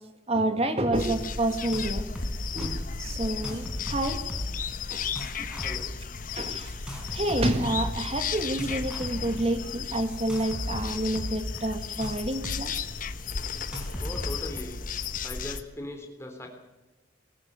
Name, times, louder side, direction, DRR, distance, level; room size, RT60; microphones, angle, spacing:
voice 1, 0.3-2.1 2.5-4.2 4.9-5.0 5.4-5.5 6.4-6.7 7.1-12.8, right 1 dB, 30° right, 7 dB, 2.1 m, -28 dB
sound 1, 0.9-15.6, left 5 dB, 45° left, 1.1 m, -34 dB
sound 2, 0.9-1.0 1.3-1.9 2.1-2.7 3.2-4.6 4.9-5.9 6.6-7.9 8.4-9.4 10.1-12.6 12.9-13.0 13.5-14.6, equal, 5° right, 4.8 m, -36 dB
voice 2, 5.6-5.9 14.0-14.8 15.2-16.5, left 1 dB, 15° left, 3 dB, 3.6 m, -39 dB
21.5 x 15.0 x 8.2 m, 1.1 s
head